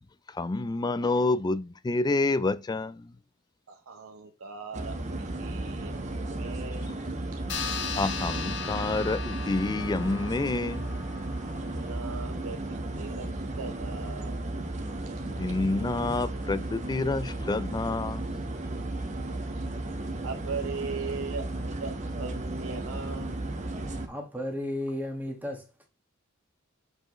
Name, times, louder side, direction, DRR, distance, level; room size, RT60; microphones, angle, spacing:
voice 1, 0.3-3.1 8.0-11.0 15.2-18.4, left 3 dB, 20° left, 0.3 m, -28 dB
voice 2, 3.7-6.9 7.3-7.4 11.6-13.3 13.6-14.4 19.3-19.6 20.2-23.4, right 5 dB, 80° right, 0.8 m, -39 dB
sound 1, 4.7-24.1, right 2 dB, 35° right, 1.0 m, -34 dB
sound 2, 7.5-12.4, left 6 dB, 60° left, 1.1 m, -38 dB
voice 3, 24.1-25.9, left 1 dB, 10° right, 1.5 m, -34 dB
7.6 x 4.6 x 3.1 m
head